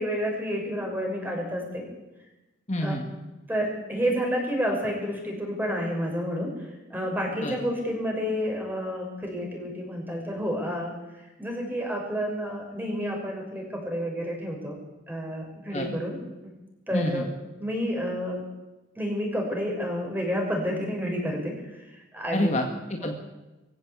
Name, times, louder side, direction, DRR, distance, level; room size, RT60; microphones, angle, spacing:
voice 1, 0.0-1.8 2.8-3.2 3.5-14.8 15.1-16.2 16.9-17.3 17.6-18.4 19.0-22.6, equal, 10° right, 0 dB, 6.3 m, -30 dB
voice 2, 2.7-3.0 7.4-7.5 15.7-15.9 16.9-17.2 22.3-23.1, left 1 dB, 35° left, 2 dB, 1.9 m, -27 dB
24.0 x 15.5 x 8.4 m, 1.0 s
head